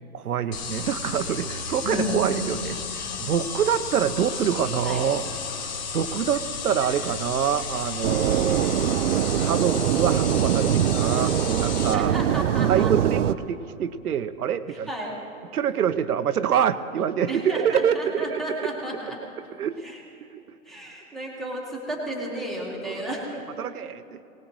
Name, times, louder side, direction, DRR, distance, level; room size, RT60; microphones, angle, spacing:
voice 1, 0.1-5.2 5.6-8.7 9.4-12.2 12.7-14.9 15.5-18.7 19.6-19.8 20.3-20.4 22.8-22.9 23.6-24.2, right 8 dB, 85° right, 11 dB, 0.9 m, -26 dB
sound 1, 0.5-11.9, left 5 dB, 30° left, 0.9 m, -33 dB
voice 2, 1.8-2.6 4.8-5.0 11.9-12.9 14.7-15.1 17.3-19.2 19.8-20.0 20.6-23.2, right 1 dB, ahead, -4 dB, 1.6 m, -32 dB
sound 2, 8.0-13.3, right 10 dB, 55° right, 0.6 m, -23 dB
23.5 x 19.0 x 3.2 m, 2.9 s
hypercardioid pair, 160°, 44 cm